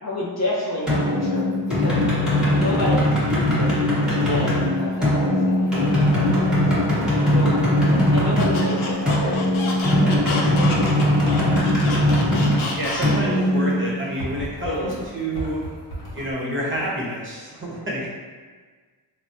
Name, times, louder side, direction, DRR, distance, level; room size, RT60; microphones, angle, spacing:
voice 1, 0.0-1.4 1.8-2.0 2.5-3.8 4.1-6.5 7.2-7.8 8.1-11.0 11.2-11.3 12.1-12.4 13.7-14.0 14.6-15.0, left 1 dB, 35° left, -5 dB, 0.6 m, -30 dB
sound 1, 0.9-14.4, left 1 dB, ahead, 1.0 m, -20 dB
voice 2, 8.1-8.4 12.8-15.6 16.1-18.1, right 1 dB, 25° right, -5 dB, 0.8 m, -28 dB
Squeak, 8.4-13.4, left 3 dB, 90° left, 0.6 m, -30 dB
sound 2, 14.2-16.3, right 1 dB, 50° left, 0.9 m, -34 dB
3.2 x 2.0 x 2.6 m, 1.5 s
cardioid pair, 85°, 46 cm